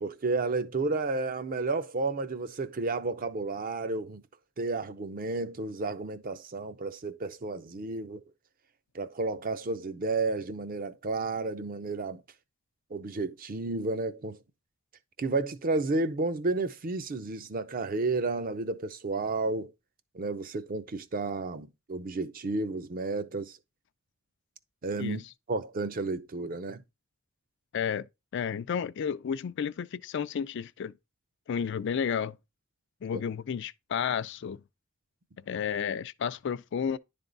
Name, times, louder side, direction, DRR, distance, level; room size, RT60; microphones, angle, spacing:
voice 1, 0.0-4.3 4.6-8.2 8.9-12.2 12.9-14.4 15.2-19.7 20.1-23.6 24.8-25.2 25.5-26.8 33.1-33.2, right 3 dB, 45° right, 0.6 m, -32 dB
voice 2, 27.7-28.1 28.3-30.9 31.5-32.4 33.0-34.6 35.5-37.0, left 7 dB, 60° left, 0.4 m, -32 dB
10.5 x 3.5 x 3.9 m
head